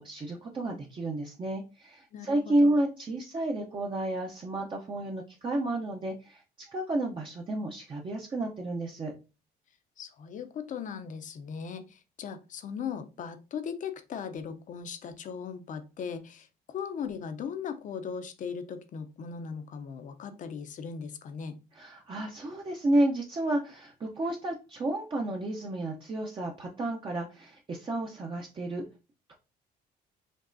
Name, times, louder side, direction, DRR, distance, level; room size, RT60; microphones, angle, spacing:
voice 1, 0.0-6.4 6.7-9.1 21.7-28.8, right 1 dB, 30° right, 0.7 m, -31 dB
voice 2, 2.1-2.8 10.0-21.6, left 6 dB, 50° left, 0.7 m, -38 dB
5.3 x 2.8 x 2.6 m
cardioid pair, 110°, 17 cm